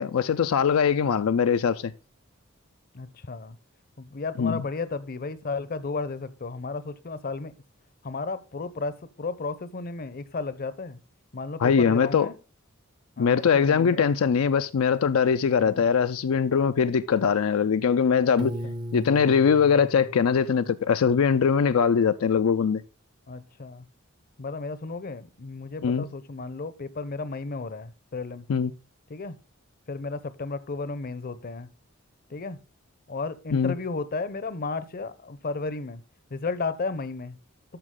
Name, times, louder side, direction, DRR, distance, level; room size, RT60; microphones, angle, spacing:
voice 1, 0.0-1.9 4.4-4.6 11.6-12.3 13.2-18.5 18.9-22.8 25.8-26.1 28.5-28.7 33.5-33.7, left 6 dB, 75° left, 0.4 m, -22 dB
voice 2, 2.9-3.6 4.0-7.5 8.0-11.0 11.3-12.4 13.2-14.1 15.6-15.8 18.2-18.7 23.3-23.9 24.4-28.5 29.1-29.4 29.9-31.7 32.3-32.6 33.1-36.0 36.3-37.4, left 3 dB, 45° left, 0.7 m, -33 dB
Piano, 18.4-21.3, equal, 20° right, 0.6 m, -38 dB
12.5 x 4.9 x 3.7 m
head